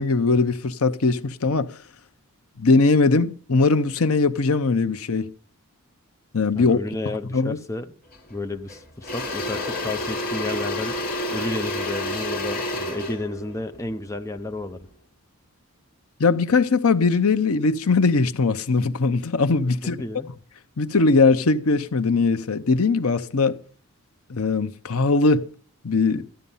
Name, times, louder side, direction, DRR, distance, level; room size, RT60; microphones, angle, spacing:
voice 1, 0.0-1.7 2.6-5.3 6.3-6.8 7.3-7.6 16.2-20.0 20.8-23.6 24.3-25.5 25.8-26.3, left 3 dB, 75° left, 0.8 m, -20 dB
voice 2, 6.5-8.0 8.3-10.9 11.3-14.9 19.8-20.3, left 2 dB, 15° left, 0.6 m, -32 dB
Engine / Drill, 8.1-8.3 8.7-14.8, left 1 dB, 40° left, 2.6 m, -30 dB
14.0 x 10.5 x 5.5 m
head